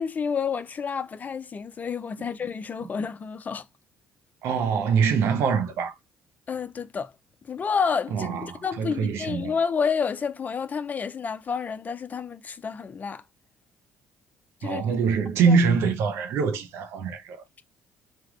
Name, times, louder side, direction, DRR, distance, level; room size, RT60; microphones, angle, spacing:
voice 1, 0.0-3.7 6.5-7.1 7.4-13.2 14.6-14.8 15.5-15.6, left 6 dB, 35° left, 0.4 m, -29 dB
voice 2, 4.4-6.0 8.1-9.5 14.6-17.4, right 6 dB, 65° right, 0.6 m, -24 dB
3.3 x 2.2 x 2.3 m
hypercardioid pair, 50°, 5 cm